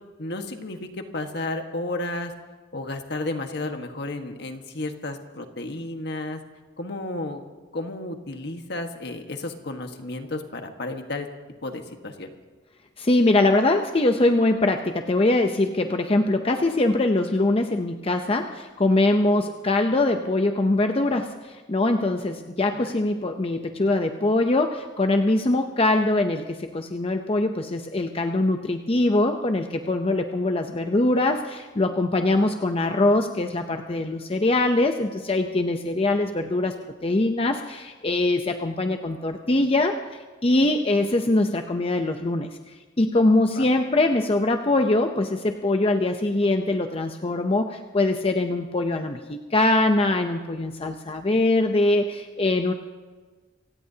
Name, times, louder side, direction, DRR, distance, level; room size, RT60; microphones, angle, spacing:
voice 1, 0.2-2.3 2.7-6.4 6.8-7.4 7.7-11.3 11.6-12.3 22.7-22.9 43.5-43.7, left 2 dB, 65° left, 5 dB, 1.5 m, -32 dB
voice 2, 13.0-36.7 37.0-42.6 43.0-52.7, left 2 dB, 30° left, 5 dB, 0.7 m, -22 dB
27.0 x 17.0 x 2.9 m, 1.3 s
head